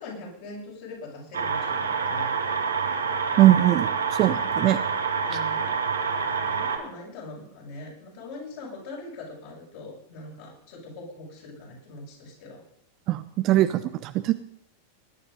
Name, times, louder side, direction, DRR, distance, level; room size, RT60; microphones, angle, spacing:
voice 1, 0.0-2.3 5.2-5.7 6.4-12.6, left 2 dB, 50° left, -3 dB, 7.5 m, -42 dB
sound 1, 1.3-6.8, right 5 dB, 70° right, 2.1 m, -27 dB
voice 2, 3.4-4.8 13.1-14.3, right 14 dB, 40° right, 10 dB, 0.8 m, -21 dB
20.0 x 10.5 x 5.4 m, 0.75 s
figure-of-eight pair, 90°, 0 cm